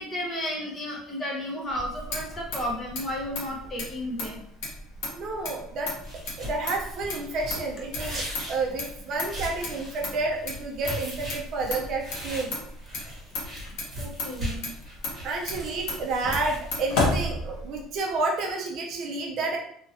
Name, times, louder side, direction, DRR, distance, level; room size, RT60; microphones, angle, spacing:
voice 1, 0.0-4.4 14.0-14.7, left 1 dB, 20° left, -2 dB, 0.7 m, -33 dB
Motor vehicle (road), 1.7-18.0, left 2 dB, 70° left, 0.9 m, -34 dB
voice 2, 5.2-5.9 6.4-8.2 8.5-12.5 15.2-19.6, right 3 dB, 40° right, 0 dB, 0.5 m, -30 dB
sound 1, 6.0-17.3, equal, 15° right, 1.2 m, -39 dB
2.8 x 2.6 x 2.8 m, 0.68 s
cardioid pair, 175°, 0 cm